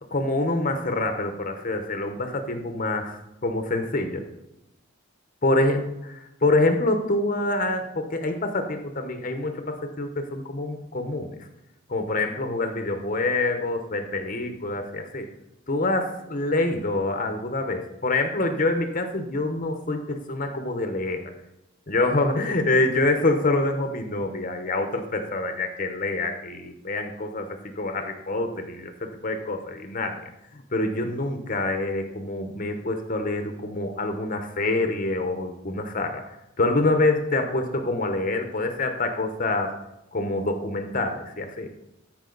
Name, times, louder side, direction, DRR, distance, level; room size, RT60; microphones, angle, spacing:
voice 1, 0.1-4.2 5.4-5.8 6.4-11.4 11.9-15.3 15.7-21.2 21.9-30.2 30.5-39.7 40.1-41.7, left 2 dB, 40° left, 6 dB, 0.9 m, -26 dB
13.5 x 5.1 x 3.9 m, 0.87 s
head